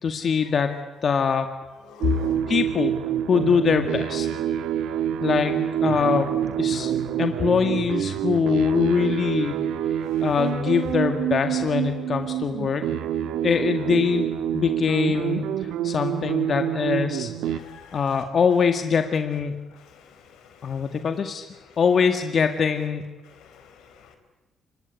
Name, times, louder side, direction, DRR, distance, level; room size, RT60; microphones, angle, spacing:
voice 1, 0.0-0.7 1.0-1.5 2.5-2.9 3.3-4.3 5.2-6.3 6.6-6.9 7.2-9.6 10.2-12.8 13.4-17.3 17.9-19.6 20.6-21.5 21.8-23.1, left 6 dB, 50° left, 7 dB, 1.9 m, -23 dB
voice 2, 1.9-2.4 10.0-10.2 17.5-18.0 19.9-20.1 20.6-20.9 23.4-24.2, left 9 dB, 90° left, 7 dB, 4.3 m, -33 dB
sound 1, 2.0-17.6, right 10 dB, 85° right, 1.5 m, -27 dB
26.0 x 22.5 x 9.8 m, 1.1 s
cardioid pair, 90°, 0 cm